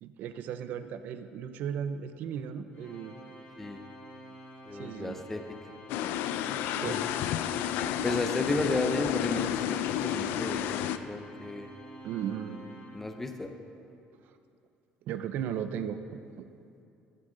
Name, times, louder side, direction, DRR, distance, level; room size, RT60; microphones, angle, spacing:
voice 1, 0.0-3.2 4.7-5.2 6.8-7.1 12.0-12.6 14.2-14.3 15.0-16.0 16.4-16.5, right 8 dB, 55° right, 10 dB, 0.5 m, -36 dB
Organ, 2.7-13.5, right 1 dB, 60° left, 2.6 m, -49 dB
voice 2, 4.7-5.4 6.9-7.0 8.0-11.7 12.9-13.5, left 2 dB, 10° left, 6 dB, 0.5 m, -33 dB
sound 1, 5.9-11.0, left 11 dB, 75° left, 0.4 m, -31 dB
13.5 x 7.5 x 3.8 m, 2.6 s
cardioid pair, 170°, 3 cm